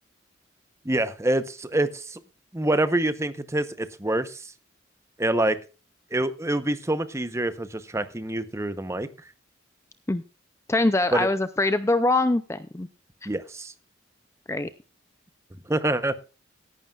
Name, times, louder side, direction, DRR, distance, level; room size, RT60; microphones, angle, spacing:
voice 1, 0.8-2.2 2.5-4.5 5.2-5.6 6.1-9.1 11.1-11.3 13.3-13.7 15.7-16.2, right 1 dB, 15° right, 11 dB, 0.8 m, -26 dB
voice 2, 10.7-12.9 13.2-13.3 14.5-14.7, left 2 dB, 15° left, 12 dB, 0.4 m, -23 dB
16.5 x 11.0 x 2.4 m, 0.34 s
head